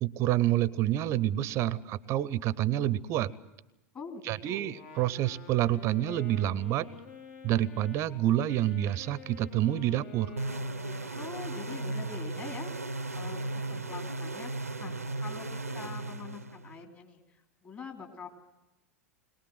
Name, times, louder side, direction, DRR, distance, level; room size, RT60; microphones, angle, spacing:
voice 1, 0.0-3.3 4.3-6.9 7.4-10.3, right 13 dB, 35° right, 21 dB, 0.7 m, -28 dB
voice 2, 3.9-4.8 11.1-12.7 13.1-18.3, left 5 dB, 30° left, 3 dB, 3.1 m, -44 dB
Wind instrument woodwind instrument, 4.6-12.6, left 3 dB, 55° left, 2.3 m, -49 dB
sound 1, 10.4-16.9, right 2 dB, 85° right, 0.7 m, -36 dB
22.0 x 19.5 x 7.7 m, 0.97 s
figure-of-eight pair, 85°, 8 cm